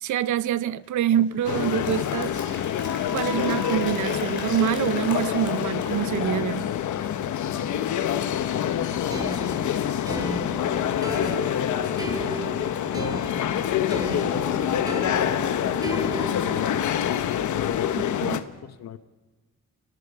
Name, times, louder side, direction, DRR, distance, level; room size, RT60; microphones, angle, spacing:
voice 1, 0.0-2.6 3.1-6.7 18.2-18.4, right 11 dB, 75° right, 0.6 m, -26 dB
Applause, 0.8-6.6, left 4 dB, 40° left, 3.8 m, -41 dB
sound 1, 1.4-18.4, left 10 dB, 80° left, 1.1 m, -26 dB
voice 2, 8.5-10.5 11.0-12.4 12.9-13.6 14.3-17.0 17.6-19.0, left 9 dB, 60° left, 0.9 m, -35 dB
sound 2, 9.1-16.8, right 2 dB, 15° right, 2.3 m, -35 dB
30.0 x 19.0 x 4.9 m
cardioid pair, 110°, 30 cm